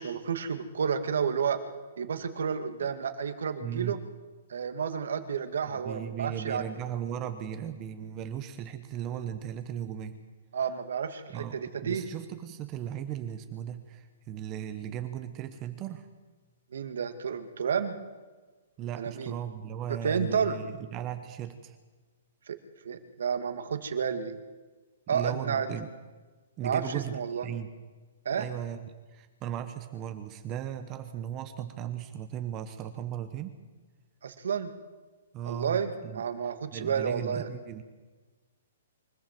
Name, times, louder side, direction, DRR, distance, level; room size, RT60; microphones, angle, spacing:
voice 1, 0.0-1.6 2.0-4.0 4.5-6.6 10.5-12.0 16.7-18.0 19.0-19.4 20.0-20.6 22.5-22.6 22.8-24.4 25.1-25.7 26.6-27.5 28.3-28.5 34.2-34.7 35.5-37.5, right 7 dB, 80° right, 8 dB, 2.2 m, -31 dB
voice 2, 3.6-4.0 5.7-10.2 11.3-16.1 18.8-21.8 25.1-25.9 26.6-27.7 28.4-33.6 35.3-36.2 36.7-37.8, right 10 dB, 20° right, 8 dB, 1.0 m, -37 dB
24.5 x 15.0 x 7.7 m, 1.3 s
hypercardioid pair, 170°, 0 cm